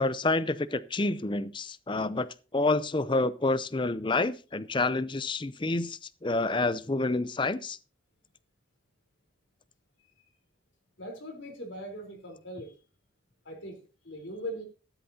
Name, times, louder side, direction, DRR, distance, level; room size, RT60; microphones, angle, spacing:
voice 1, 0.0-2.3 2.5-7.8, left 2 dB, 25° left, 16 dB, 0.5 m, -28 dB
voice 2, 11.0-12.7 13.5-14.6, equal, 75° left, 3 dB, 3.9 m, -40 dB
14.0 x 12.0 x 2.8 m, 0.34 s
head